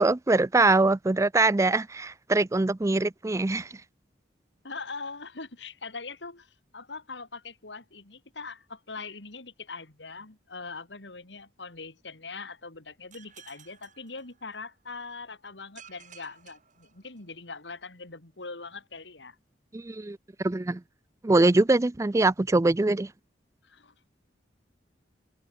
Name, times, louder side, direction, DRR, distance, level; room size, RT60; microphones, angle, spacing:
voice 1, 0.0-3.7 19.7-20.2 20.4-20.8 21.2-23.1, right 2 dB, 15° right, 0.4 m, -23 dB
voice 2, 4.6-19.4 23.6-23.9, left 4 dB, 80° left, 3.2 m, -42 dB
sound 1, 13.1-14.9 15.8-17.6, right 8 dB, 45° right, 7.3 m, -54 dB
head